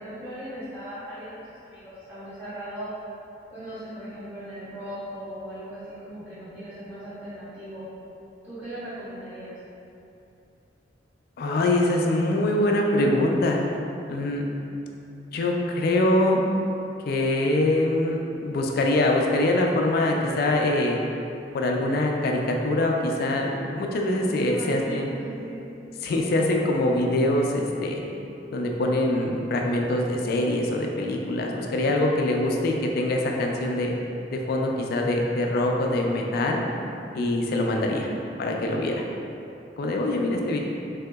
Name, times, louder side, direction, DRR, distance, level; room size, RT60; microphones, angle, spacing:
voice 1, 0.0-2.9 3.5-7.9 8.4-9.6 24.4-25.6 37.9-38.2, right 1 dB, 10° right, -17 dB, 1.3 m, -38 dB
voice 2, 11.4-13.6 14.1-14.4 15.3-16.4 17.1-21.0 21.5-25.1 26.0-28.0 28.5-33.9 34.3-36.6 37.1-38.1 38.4-39.0 39.8-40.6, left 1 dB, 55° left, 1 dB, 0.3 m, -24 dB
3.3 x 2.8 x 2.3 m, 2.8 s
head